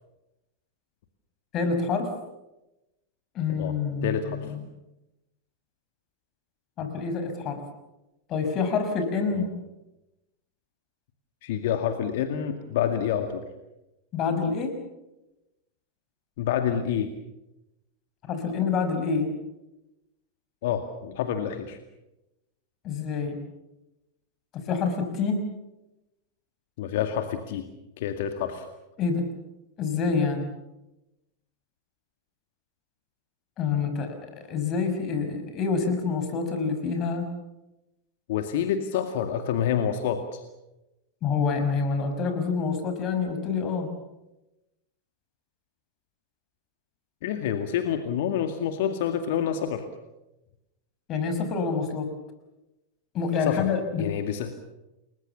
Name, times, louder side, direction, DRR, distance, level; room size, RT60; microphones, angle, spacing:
voice 1, 1.5-2.1 3.3-4.6 6.8-7.6 8.3-9.5 14.1-14.8 18.2-19.3 22.8-23.4 24.5-25.4 29.0-29.3 29.8-30.5 33.6-37.3 41.2-43.9 51.1-52.1 53.1-54.1, left 5 dB, 35° left, 7 dB, 5.8 m, -27 dB
voice 2, 4.0-4.5 9.3-9.5 11.4-13.4 16.4-17.1 20.6-21.8 26.8-27.7 28.0-28.7 38.3-40.4 47.2-49.9 53.5-53.7 54.0-54.5, left 9 dB, 55° left, 7 dB, 2.1 m, -28 dB
29.5 x 21.5 x 7.2 m, 0.96 s
figure-of-eight pair, 90°, 0 cm